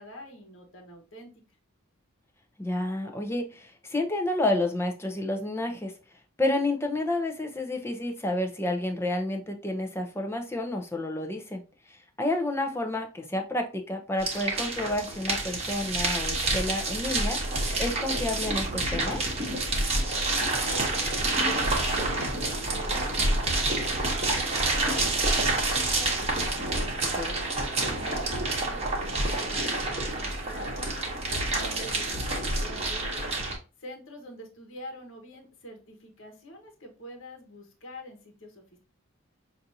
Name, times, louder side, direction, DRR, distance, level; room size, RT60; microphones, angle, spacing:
voice 1, 0.0-1.3 20.1-24.2 24.7-27.2 27.8-30.9 31.5-33.3 33.8-38.8, equal, 65° left, 3 dB, 1.1 m, -45 dB
voice 2, 2.6-5.9 6.4-11.6 12.2-17.4 17.8-19.2 27.0-27.3, left 1 dB, 10° left, 3 dB, 0.6 m, -30 dB
sound 1, 14.2-33.6, right 2 dB, 30° right, 1.1 m, -28 dB
5.9 x 2.6 x 2.7 m, 0.33 s
head